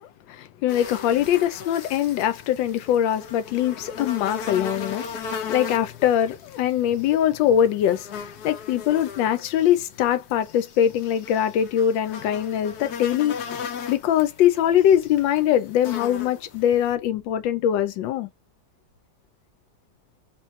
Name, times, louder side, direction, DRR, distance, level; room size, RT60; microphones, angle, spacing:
voice 1, 0.0-18.3, left 10 dB, 85° left, 1.3 m, -22 dB
sound 1, 0.7-16.9, left 6 dB, 65° left, 1.1 m, -38 dB
3.0 x 3.0 x 3.1 m
omnidirectional pair, 2.0 m